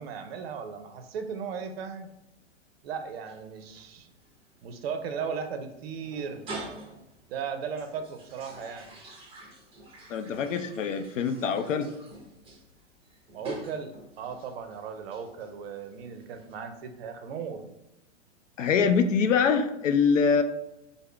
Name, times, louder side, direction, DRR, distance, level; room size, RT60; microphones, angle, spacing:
voice 1, 0.0-2.1 2.8-4.1 4.6-6.4 7.3-8.9 13.3-17.6, right 6 dB, 55° right, 8 dB, 0.6 m, -36 dB
sound 1, 3.3-16.5, right 1 dB, 15° right, 0.7 m, -47 dB
voice 2, 10.1-11.9 18.6-20.4, left 6 dB, 80° left, 8 dB, 0.5 m, -24 dB
3.5 x 2.0 x 3.3 m, 0.87 s
hypercardioid pair, 110°, 37 cm